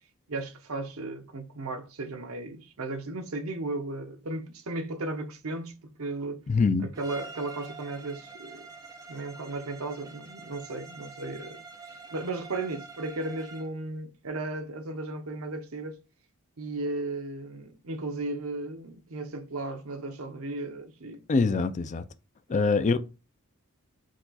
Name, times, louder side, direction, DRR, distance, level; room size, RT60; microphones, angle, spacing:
voice 1, 0.3-5.7 6.0-6.5 6.8-8.7 9.1-11.6 12.1-16.0 16.6-21.2 22.5-22.6, right 2 dB, 80° right, 0.8 m, -35 dB
voice 2, 6.5-6.9 21.3-22.0 22.5-23.0, left 4 dB, 35° left, 0.3 m, -24 dB
Bowed string instrument, 6.9-13.8, right 4 dB, 15° right, 0.5 m, -46 dB
4.6 x 2.4 x 3.9 m
head